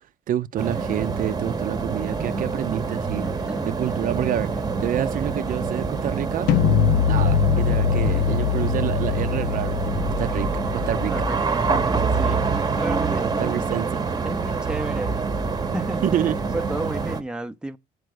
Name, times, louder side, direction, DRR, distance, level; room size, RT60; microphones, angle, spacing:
voice 1, 0.3-3.2 3.7-6.5 7.1-11.1 13.4-13.9 16.0-16.4, right 11 dB, 55° right, 0.5 m, -28 dB
sound 1, 0.6-17.2, right 4 dB, 25° right, 0.9 m, -26 dB
voice 2, 3.2-3.7 8.0-8.4 11.1-13.5 14.3-15.3 15.7-16.0 16.5-17.8, right 1 dB, 5° right, 0.6 m, -33 dB
sound 2, 6.5-12.5, left 8 dB, 75° left, 0.6 m, -23 dB
7.9 x 4.8 x 6.4 m
cardioid pair, 110°, 17 cm